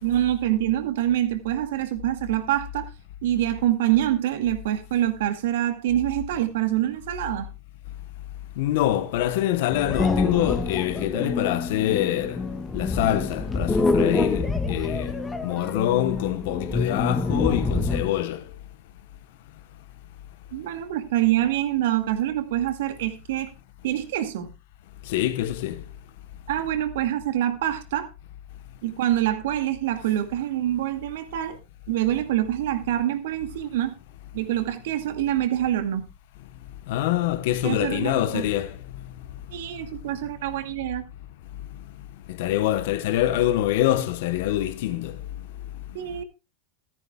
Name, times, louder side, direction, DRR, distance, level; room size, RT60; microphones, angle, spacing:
voice 1, 0.0-2.9 3.2-7.5 20.5-23.5 23.8-24.5 26.5-28.1 28.8-31.6 31.9-33.9 34.3-36.1 37.6-38.4 39.5-41.0 45.9-46.2, right 13 dB, 75° right, 2.1 m, -25 dB
voice 2, 8.6-12.4 12.7-15.1 15.4-18.4 25.1-25.8 36.9-38.7 42.4-45.1, left 13 dB, 70° left, 1.1 m, -25 dB
sound 1, 9.7-18.2, left 3 dB, 10° left, 1.6 m, -26 dB
15.5 x 13.5 x 2.3 m
supercardioid pair, 135°, 0 cm